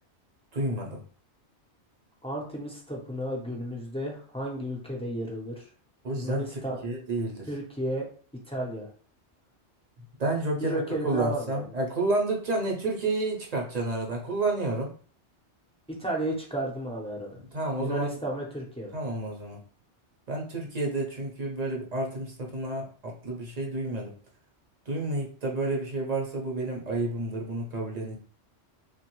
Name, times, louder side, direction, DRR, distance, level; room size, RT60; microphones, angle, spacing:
voice 1, 0.5-1.0 6.0-7.5 10.2-14.9 17.5-18.2 18.9-19.6 20.3-24.2 24.9-28.2, right 2 dB, 45° right, -1 dB, 0.7 m, -30 dB
voice 2, 2.2-5.6 6.1-6.8 7.5-8.0 8.5-8.9 10.6-11.6 15.9-17.4 17.8-18.9, right 1 dB, 5° left, -2 dB, 0.5 m, -33 dB
3.0 x 2.2 x 3.0 m, 0.43 s
omnidirectional pair, 1.2 m